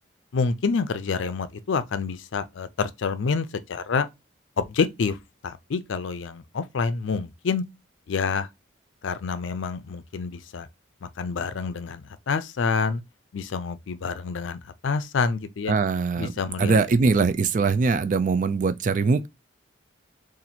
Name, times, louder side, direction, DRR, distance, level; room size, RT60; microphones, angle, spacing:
voice 1, 0.3-4.1 4.6-5.2 5.4-7.6 8.1-8.5 9.0-10.7 11.0-13.0 13.3-15.7 16.2-16.8, left 5 dB, 75° left, 0.4 m, -27 dB
voice 2, 15.7-16.3 16.6-19.3, right 4 dB, 40° right, 0.3 m, -22 dB
2.8 x 2.5 x 4.1 m
head